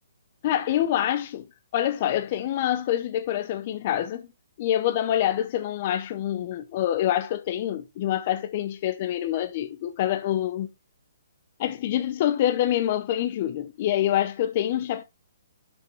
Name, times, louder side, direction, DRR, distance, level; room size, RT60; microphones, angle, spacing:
voice 1, 0.4-1.5 1.7-4.3 4.6-10.7 11.6-15.0, left 11 dB, 40° left, 0.7 m, -26 dB
7.8 x 5.9 x 3.2 m
hypercardioid pair, 150°, 0 cm